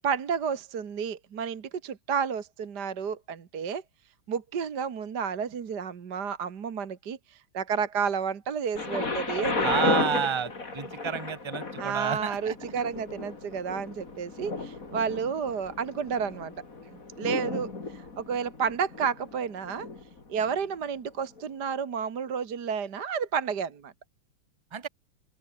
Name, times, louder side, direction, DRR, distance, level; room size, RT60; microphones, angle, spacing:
voice 1, 0.0-3.8 4.3-9.9 11.8-16.5 17.2-19.9 20.3-23.9, right 6 dB, 55° right, 2.1 m, -31 dB
Thunder, 8.8-20.6 21.4-21.5, left 3 dB, 40° left, 3.6 m, -34 dB
voice 2, 9.6-12.6 24.7-24.9, right 7 dB, 20° right, 0.8 m, -30 dB
open air
omnidirectional pair, 2.3 m